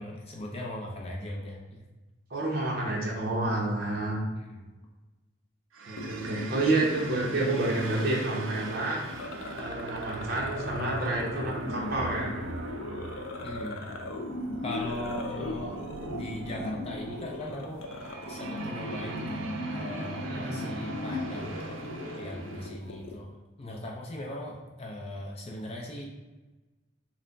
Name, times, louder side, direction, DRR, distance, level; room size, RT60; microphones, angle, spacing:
voice 1, 0.0-1.8 4.4-4.6 13.4-13.8 14.6-15.8 16.1-17.8 18.3-19.5 19.7-21.5 22.2-23.3 23.6-26.1, left 1 dB, 30° left, -1 dB, 0.5 m, -39 dB
voice 2, 2.3-4.2 5.9-9.0 9.6-12.4 20.2-20.7, right 2 dB, 50° right, -3 dB, 0.8 m, -29 dB
sound 1, 5.7-22.7, right 3 dB, 75° right, 0.4 m, -40 dB
sound 2, 6.0-23.2, left 2 dB, 85° left, 0.4 m, -39 dB
3.3 x 2.1 x 3.8 m, 1.2 s
head